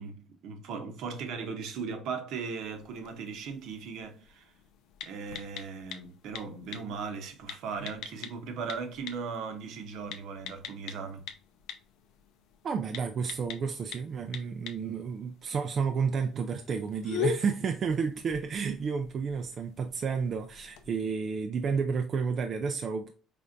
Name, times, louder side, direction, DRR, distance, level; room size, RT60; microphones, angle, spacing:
voice 1, 0.0-4.4 5.0-11.2, right 5 dB, 60° right, 0.8 m, -38 dB
sound 1, 2.6-20.9, left 7 dB, 75° left, 0.6 m, -43 dB
voice 2, 12.6-23.1, right 5 dB, 35° right, 0.3 m, -31 dB
5.0 x 3.3 x 2.5 m
cardioid pair, 170°, 0 cm